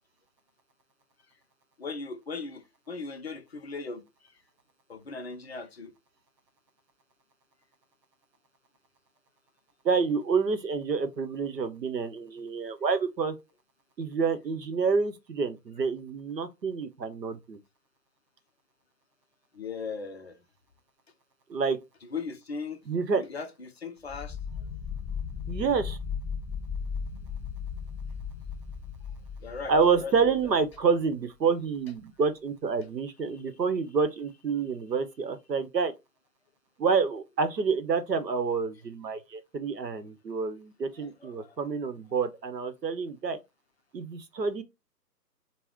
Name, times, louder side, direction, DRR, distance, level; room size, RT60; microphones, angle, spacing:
voice 1, 1.8-4.0 4.9-5.9 19.5-20.4 22.0-22.8 23.1-24.4 29.4-30.4 33.3-33.4 41.0-41.6, left 4 dB, 40° left, 0.5 m, -38 dB
voice 2, 9.8-13.4 14.0-17.6 21.5-21.8 22.9-23.2 25.5-26.0 29.7-35.9 36.8-43.4 43.9-44.6, right 5 dB, 80° right, 0.8 m, -28 dB
sound 1, 24.1-30.8, left 6 dB, ahead, 0.7 m, -36 dB
2.5 x 2.1 x 3.5 m
figure-of-eight pair, 130°, 49 cm